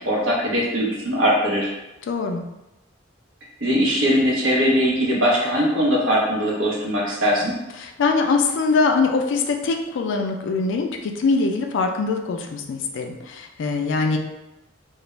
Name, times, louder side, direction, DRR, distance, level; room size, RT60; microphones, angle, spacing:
voice 1, 0.0-1.7 3.6-7.5, equal, 70° right, -3 dB, 0.7 m, -20 dB
voice 2, 2.1-2.4 7.8-14.2, left 4 dB, 65° left, 4 dB, 0.3 m, -22 dB
2.3 x 2.0 x 3.0 m, 0.94 s
head